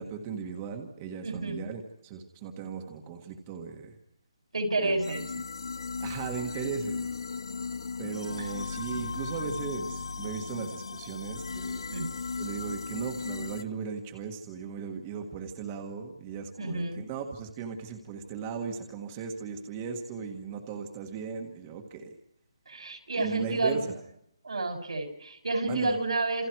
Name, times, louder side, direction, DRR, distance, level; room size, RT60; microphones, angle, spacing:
voice 1, 0.0-3.9 4.8-5.0 6.0-7.1 8.0-11.8 12.4-22.1 23.2-24.0 25.6-26.0, right 6 dB, 15° right, 3 dB, 1.6 m, -37 dB
voice 2, 1.2-1.6 4.5-5.3 8.4-8.5 11.9-12.1 16.6-17.1 22.7-23.8 24.4-26.5, right 2 dB, 80° right, 6 dB, 6.1 m, -30 dB
sound 1, 5.0-13.6, left 4 dB, 60° left, 0.9 m, -36 dB
29.0 x 28.0 x 4.7 m, 0.75 s
hypercardioid pair, 175°, 3 cm